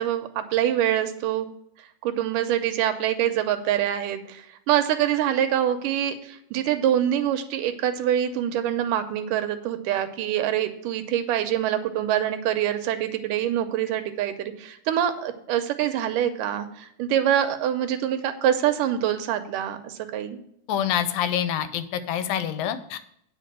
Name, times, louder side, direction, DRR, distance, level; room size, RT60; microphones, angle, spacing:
voice 1, 0.0-1.5 2.0-20.4, right 10 dB, 80° right, 8 dB, 2.2 m, -25 dB
voice 2, 20.7-23.0, left 9 dB, 90° left, 12 dB, 2.4 m, -26 dB
9.2 x 4.8 x 7.3 m, 0.73 s
omnidirectional pair, 3.9 m